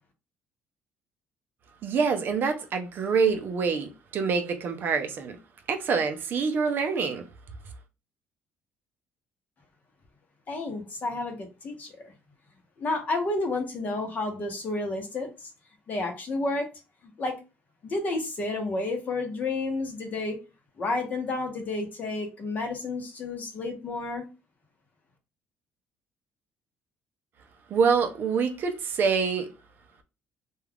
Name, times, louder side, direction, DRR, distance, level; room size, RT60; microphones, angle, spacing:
voice 1, 1.8-5.4 5.7-7.2 27.7-29.5, right 5 dB, 50° right, 0.5 m, -26 dB
voice 2, 10.5-12.1 12.8-15.5 15.9-16.7 17.2-17.4 17.8-20.4 20.8-24.3, left 2 dB, 35° left, 0.8 m, -31 dB
2.3 x 2.3 x 3.4 m
cardioid pair, 130°, 5 cm